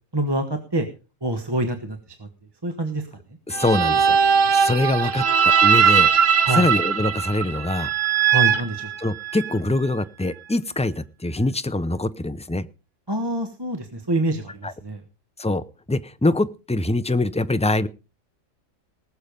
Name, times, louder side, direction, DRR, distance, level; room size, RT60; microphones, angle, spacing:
voice 1, 0.1-0.8 1.2-2.3 2.6-3.0 6.4-6.6 8.3-8.9 13.1-15.0, right 1 dB, 20° right, 6 dB, 1.3 m, -26 dB
voice 2, 3.5-4.2 4.5-5.2 5.6-6.1 6.5-7.9 9.0-12.7 14.6-14.7 15.4-15.6 15.9-17.9, left 2 dB, 10° left, 13 dB, 0.3 m, -23 dB
sound 1, 3.5-9.5, right 7 dB, 85° right, 1.4 m, -19 dB
19.5 x 7.2 x 5.2 m, 0.33 s
omnidirectional pair, 1.3 m